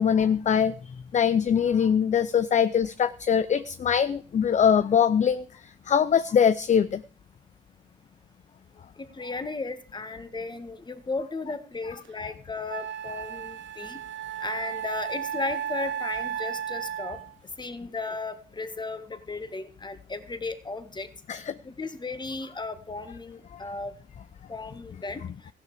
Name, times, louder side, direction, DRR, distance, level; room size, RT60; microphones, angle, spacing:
voice 1, 0.0-7.0 21.3-21.6 23.5-23.6, left 7 dB, 40° left, 14 dB, 0.6 m, -23 dB
voice 2, 9.0-14.0 14.4-17.2 17.6-23.9 24.5-25.2, left 3 dB, 20° left, 11 dB, 1.6 m, -35 dB
Wind instrument woodwind instrument, 12.0-12.1 12.7-17.3, right 9 dB, 65° right, 1.1 m, -34 dB
15.0 x 11.5 x 4.9 m, 0.42 s
cardioid pair, 90°, 20 cm